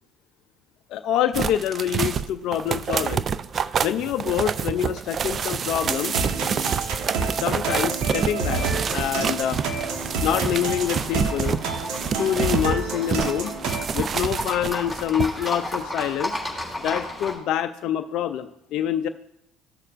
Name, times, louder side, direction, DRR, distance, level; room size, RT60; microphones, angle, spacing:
voice 1, 0.9-3.2 3.8-6.1 7.3-8.6 8.9-9.6 10.2-11.6 12.2-13.5 13.9-16.4 16.8-19.1, left 10 dB, 65° left, 7 dB, 0.4 m, -26 dB
sound 1, 1.3-12.7 13.1-15.5 15.8-15.9, right 7 dB, 45° right, 0.3 m, -28 dB
sound 2, 5.9-13.9, right 4 dB, 70° right, 1.1 m, -29 dB
Livestock farm animals working animals, 8.5-17.4, left 1 dB, ahead, 2.8 m, -35 dB
14.0 x 6.6 x 2.5 m, 0.77 s
supercardioid pair, 80°, 0 cm